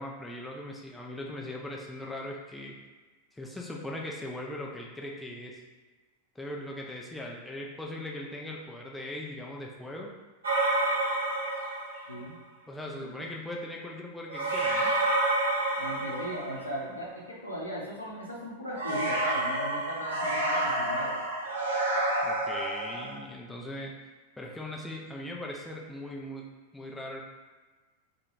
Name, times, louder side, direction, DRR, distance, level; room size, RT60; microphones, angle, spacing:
voice 1, 0.0-2.7 3.3-5.6 6.4-10.1 12.7-14.9 22.2-23.9 24.4-26.4 26.7-27.2, left 1 dB, 5° left, -2 dB, 0.3 m, -39 dB
sound 1, 10.4-12.2 14.3-16.8 18.8-23.2, right 2 dB, 75° right, 0.5 m, -29 dB
voice 2, 15.7-21.2, equal, 85° left, -4 dB, 0.6 m, -38 dB
2.3 x 2.1 x 3.0 m, 1.3 s
figure-of-eight pair, 90°, 0 cm